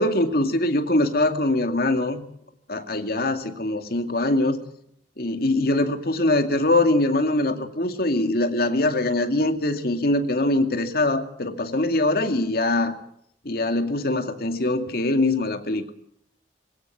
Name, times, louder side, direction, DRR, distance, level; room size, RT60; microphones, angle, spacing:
voice 1, 0.0-2.2 2.7-4.6 5.2-12.9 13.4-15.8, left 2 dB, 55° left, 6 dB, 2.3 m, -23 dB
21.5 x 17.5 x 8.6 m, 0.69 s
head